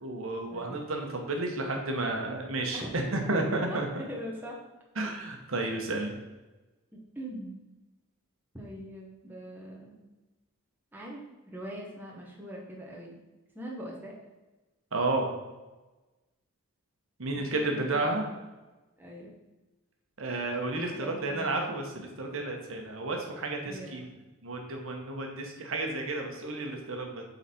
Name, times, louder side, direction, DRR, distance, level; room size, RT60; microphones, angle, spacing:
voice 1, 0.0-3.9 5.0-6.1 14.9-15.3 17.2-18.2 20.2-24.0 24.4-27.2, right 2 dB, 65° right, 2 dB, 1.1 m, -32 dB
voice 2, 3.7-4.6 5.0-5.1 6.9-7.6 8.5-10.0 10.9-11.2 11.5-13.2 13.5-14.1 17.3-18.2 19.0-19.3 20.7-21.5 23.6-24.1, equal, 10° right, -3 dB, 1.0 m, -42 dB
8.0 x 4.0 x 4.3 m, 1.1 s
head